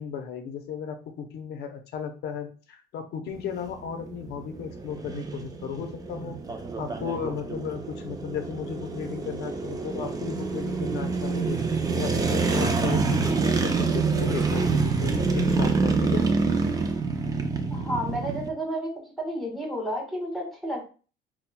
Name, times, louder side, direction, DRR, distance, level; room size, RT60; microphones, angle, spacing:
voice 1, 0.0-6.4 6.8-11.6 12.0-16.3, left 7 dB, 65° left, 6 dB, 0.7 m, -35 dB
sound 1, 3.3-18.5, right 4 dB, 20° right, 0.5 m, -27 dB
voice 2, 17.7-18.9 19.2-20.9, equal, ahead, -2 dB, 1.4 m, -31 dB
5.7 x 2.2 x 2.2 m, 0.37 s
cardioid pair, 135°, 18 cm